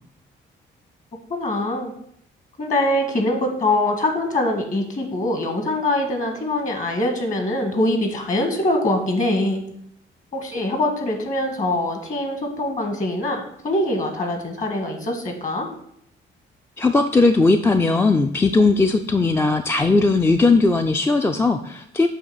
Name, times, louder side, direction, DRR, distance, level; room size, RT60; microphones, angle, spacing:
voice 1, 1.3-1.9 2.6-9.6 10.3-15.7, left 1 dB, 40° left, 4 dB, 1.7 m, -23 dB
voice 2, 16.8-22.1, left 3 dB, 10° left, 6 dB, 0.4 m, -18 dB
7.8 x 3.0 x 5.7 m, 0.68 s
cardioid pair, 90°, 20 cm